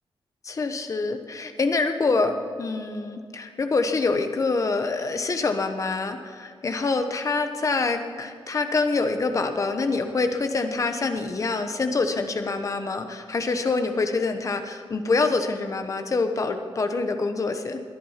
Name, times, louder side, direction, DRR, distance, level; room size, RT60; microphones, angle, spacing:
voice 1, 0.4-17.8, left 3 dB, 35° left, 7 dB, 1.1 m, -26 dB
20.0 x 11.0 x 5.9 m, 2.1 s
wide cardioid pair, 180°, 9 cm